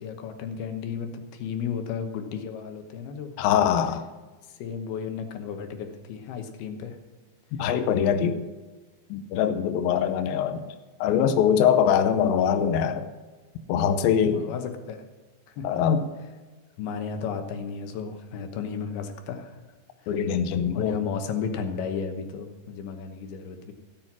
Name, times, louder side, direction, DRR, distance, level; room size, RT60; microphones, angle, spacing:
voice 1, 0.0-3.3 4.5-7.0 14.2-15.1 15.5-15.7 16.8-19.6 20.0-20.1 20.7-23.7, left 6 dB, 70° left, 6 dB, 2.7 m, -34 dB
voice 2, 3.4-4.1 7.6-8.4 9.1-10.7 11.0-13.1 13.7-14.4 15.6-16.1 20.1-21.0, left 8 dB, 90° left, 9 dB, 2.0 m, -23 dB
15.0 x 7.7 x 6.0 m, 1.3 s
omnidirectional pair, 5.2 m